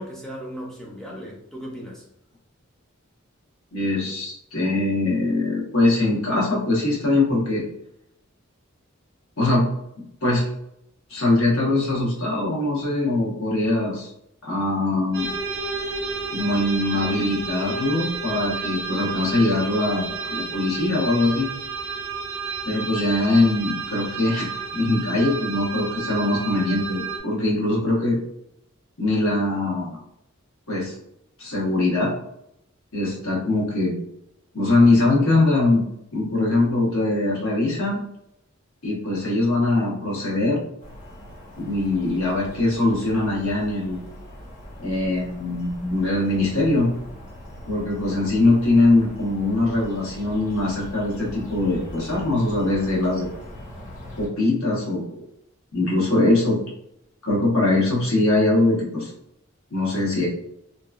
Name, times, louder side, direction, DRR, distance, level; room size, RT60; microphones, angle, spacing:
voice 1, 0.0-2.0, equal, ahead, -4 dB, 0.6 m, -36 dB
voice 2, 3.7-7.6 9.4-9.7 10.2-10.5 11.1-14.1 14.4-15.3 16.3-21.5 22.6-28.2 29.0-30.0 30.7-30.9 31.4-32.1 32.9-34.0 34.5-35.8 36.1-38.0 38.8-40.6 41.6-44.0 44.8-46.9 47.7-53.3 54.2-55.1 55.7-56.6 57.2-59.1 59.7-60.3, left 2 dB, 80° left, -4 dB, 1.1 m, -22 dB
sound 1, 15.1-27.2, right 4 dB, 55° right, 0.6 m, -31 dB
sound 2, 40.8-54.3, equal, 35° left, 0.9 m, -41 dB
2.8 x 2.3 x 2.4 m, 0.78 s
head